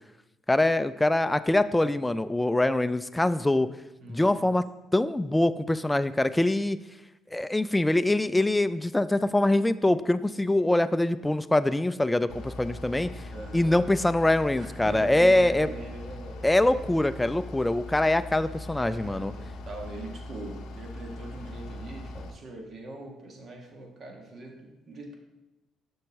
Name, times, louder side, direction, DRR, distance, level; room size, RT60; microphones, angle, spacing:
voice 1, 0.5-3.7 4.1-4.6 4.9-6.8 7.3-13.1 13.5-15.7 16.4-19.3, left 1 dB, 10° left, 13 dB, 0.3 m, -24 dB
voice 2, 4.0-4.5 13.3-13.8 14.6-16.5 18.8-25.1, right 2 dB, 50° right, 1 dB, 1.6 m, -41 dB
Bus / Idling, 12.3-22.3, left 1 dB, 80° left, 0.7 m, -40 dB
6.6 x 6.3 x 3.5 m, 1.0 s
supercardioid pair, 70°, 0 cm